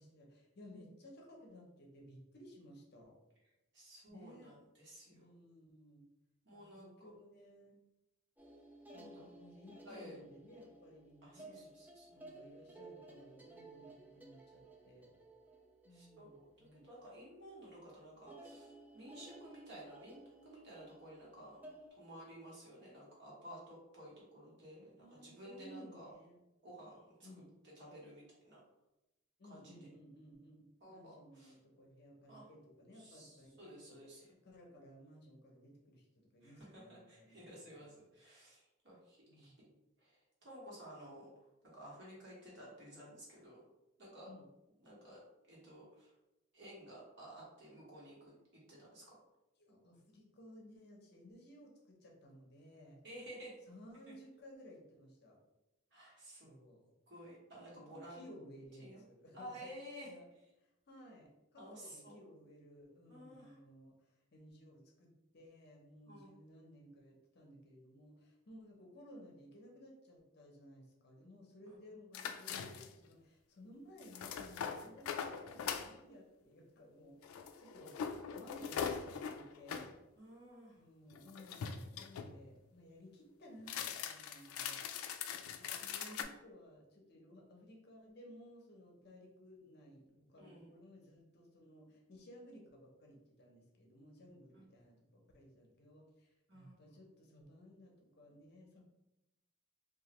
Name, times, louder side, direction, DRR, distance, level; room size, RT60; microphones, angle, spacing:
voice 1, 0.0-3.2 4.1-4.5 5.1-6.1 6.5-7.8 8.9-11.7 12.1-15.1 15.8-16.9 25.0-26.4 27.2-27.4 29.4-37.9 39.3-39.7 44.3-44.4 49.6-53.0 53.7-55.4 56.3-56.9 57.7-59.7 60.0-60.3 60.6-77.9 78.3-79.9 80.7-84.8 85.6-98.8, equal, 50° left, 0 dB, 0.6 m, -58 dB
voice 2, 3.7-5.3 6.4-7.1 8.9-9.3 9.8-10.2 11.2-12.1 15.9-26.1 26.6-27.3 27.6-28.6 29.5-29.8 30.8-31.6 32.3-32.5 32.9-34.3 36.4-39.5 40.0-43.6 44.0-44.3 44.8-46.1 46.5-49.2 53.0-53.6 55.9-56.5 57.1-58.2 58.8-59.0 59.3-60.1 61.6-62.1 63.1-63.6 66.1-66.3 71.7-71.8 80.2-80.9 85.6-86.3 90.4-90.8 94.5-94.6 96.5-96.8, equal, 55° right, -5 dB, 1.2 m, -54 dB
sound 1, 8.4-17.2 17.5-17.9 18.3-21.9, right 2 dB, 10° right, 0.3 m, -57 dB
sound 2, 72.1-73.1 74.0-75.9 77.2-79.9 81.1-82.3 83.6-86.2, left 7 dB, 90° left, 0.3 m, -42 dB
3.0 x 2.4 x 2.9 m, 0.94 s
head